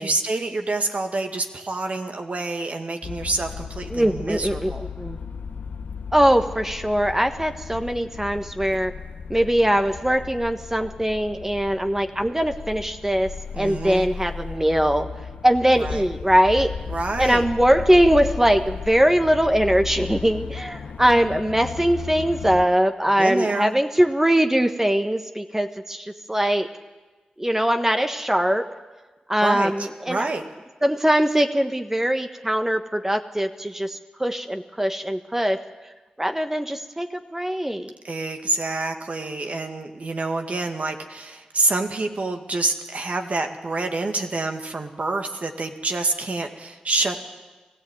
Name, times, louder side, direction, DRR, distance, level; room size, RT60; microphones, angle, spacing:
voice 1, 0.0-4.9 13.5-14.1 15.8-16.0 16.9-17.5 23.2-23.7 29.4-30.4 38.0-47.2, right 3 dB, 55° right, 5 dB, 2.1 m, -27 dB
sound 1, 3.0-22.6, left 6 dB, 85° left, 1.1 m, -35 dB
voice 2, 3.9-5.2 6.1-8.9 9.3-15.1 15.4-16.7 17.2-26.7 27.4-28.7 29.3-30.3 30.8-35.6 36.2-37.9, equal, 15° right, 6 dB, 1.3 m, -21 dB
20.0 x 14.5 x 9.1 m, 1.2 s
cardioid pair, 40°, 3 cm